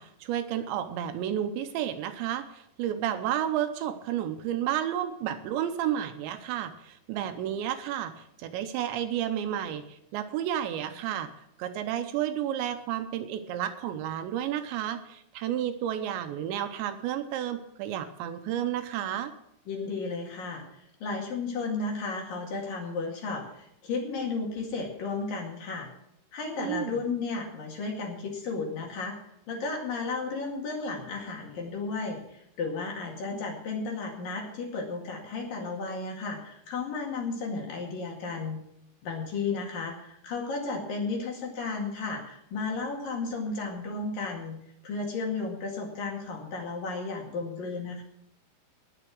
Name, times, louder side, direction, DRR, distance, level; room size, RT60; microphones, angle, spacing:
voice 1, 0.0-11.3 11.6-19.3 26.6-27.0 33.3-33.5, right 10 dB, 80° right, 8 dB, 2.9 m, -31 dB
voice 2, 19.7-25.9 26.3-29.2 29.5-38.6 39.0-44.6 44.8-48.0, left 4 dB, 55° left, 0 dB, 3.4 m, -33 dB
20.0 x 6.8 x 6.2 m, 0.75 s
omnidirectional pair, 5.5 m